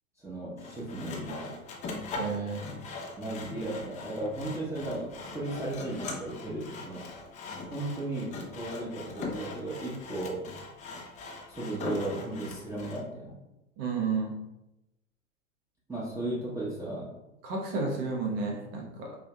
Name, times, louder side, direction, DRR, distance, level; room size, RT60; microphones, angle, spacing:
voice 1, 0.2-1.6 3.2-7.0 7.7-10.4 11.5-13.3 15.9-17.2, right 2 dB, 10° right, -7 dB, 0.9 m, -35 dB
Sawing, 0.6-13.0, left 3 dB, 20° left, 0.5 m, -40 dB
voice 2, 2.1-2.6 13.8-14.3 17.4-19.2, right 4 dB, 45° right, 0 dB, 1.0 m, -31 dB
4.6 x 2.7 x 2.2 m, 0.92 s
hypercardioid pair, 95°, 38 cm